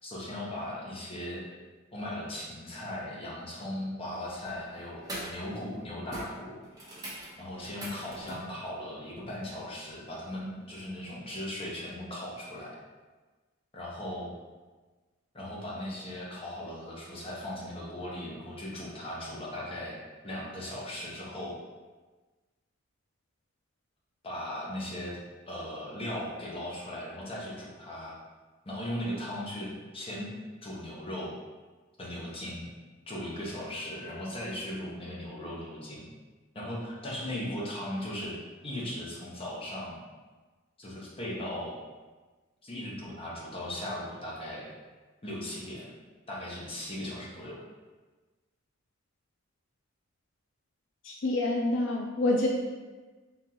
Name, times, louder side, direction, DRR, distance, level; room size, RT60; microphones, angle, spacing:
voice 1, 0.0-1.4 1.9-6.6 7.4-12.7 13.7-14.3 15.3-20.0 20.2-21.6 24.2-25.1 25.5-28.1 28.6-30.3 30.6-31.3 32.0-32.7 33.1-36.1 36.5-38.3 38.6-40.0 40.8-41.8 42.6-44.7 45.2-45.9 46.3-47.6, left 1 dB, 30° left, -5 dB, 0.9 m, -38 dB
sound 1, 4.2-4.5 5.0-5.4 5.7-5.8 6.1-8.5 10.5-10.6, right 1 dB, 20° right, 1.0 m, -42 dB
voice 2, 51.0-52.5, left 2 dB, 65° left, 0 dB, 0.4 m, -27 dB
3.8 x 3.5 x 2.9 m, 1.3 s
head